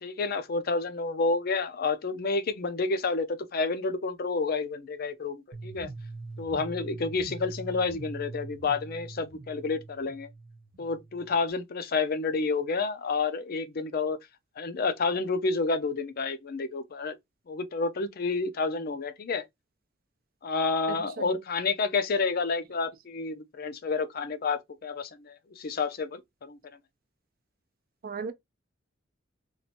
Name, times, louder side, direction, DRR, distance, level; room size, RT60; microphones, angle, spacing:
voice 1, 0.0-5.9 6.4-10.3 10.8-14.2 14.6-17.1 17.5-19.4 20.4-26.6, left 4 dB, 50° left, 0.5 m, -29 dB
sound 1, 5.5-11.5, right 3 dB, 90° right, 0.6 m, -43 dB
voice 2, 20.9-21.3 28.0-28.3, right 5 dB, 50° right, 0.4 m, -36 dB
3.1 x 2.5 x 2.7 m
head